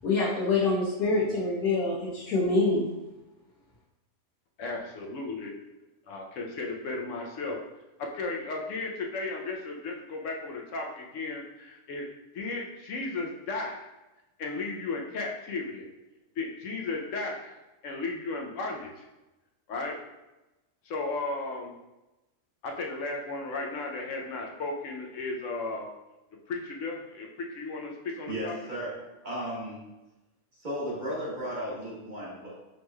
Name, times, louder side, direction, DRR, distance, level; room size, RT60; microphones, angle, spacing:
voice 1, 0.0-2.9, left 3 dB, 80° left, -7 dB, 1.3 m, -25 dB
voice 2, 4.6-5.5 6.1-7.6 8.0-12.1 12.3-13.9 14.4-15.9 16.4-17.5 17.8-19.0 19.7-20.0 20.8-21.7 22.6-25.9 26.5-28.6, left 3 dB, 65° left, 1 dB, 0.9 m, -35 dB
voice 3, 28.3-29.8 30.6-32.5, equal, 35° right, -6 dB, 1.1 m, -35 dB
5.2 x 3.0 x 2.2 m, 1.0 s
omnidirectional pair, 1.5 m